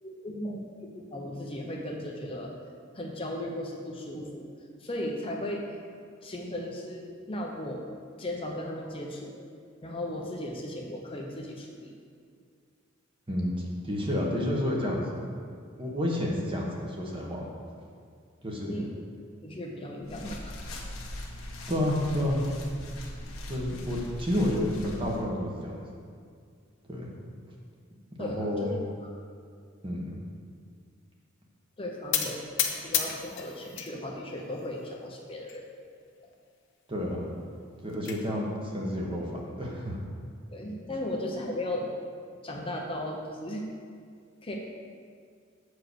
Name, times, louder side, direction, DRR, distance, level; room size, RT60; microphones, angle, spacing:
voice 1, 0.0-2.5 2.9-4.5 4.8-5.8 6.2-7.9 8.2-9.5 9.8-11.9 18.7-18.9 19.4-20.5 20.8-20.9 28.2-28.8 31.8-35.6 36.2-36.3 40.5-41.9 42.4-43.6 44.4-44.6, left 1 dB, 25° left, -1 dB, 0.8 m, -36 dB
voice 2, 13.8-15.3 15.8-17.5 18.4-18.9 21.7-22.4 23.5-25.8 26.9-27.1 28.2-28.8 29.8-30.2 36.9-37.3 37.8-40.0, left 1 dB, 25° right, -2 dB, 1.3 m, -30 dB
sound 1, 20.0-25.2, left 1 dB, 90° left, 1.3 m, -40 dB
sound 2, 32.1-33.9 34.3-34.9 35.5-35.6 35.9-36.0 36.3-36.4 37.5-38.2, left 8 dB, 60° left, 0.8 m, -31 dB
8.3 x 4.9 x 6.3 m, 2.1 s
head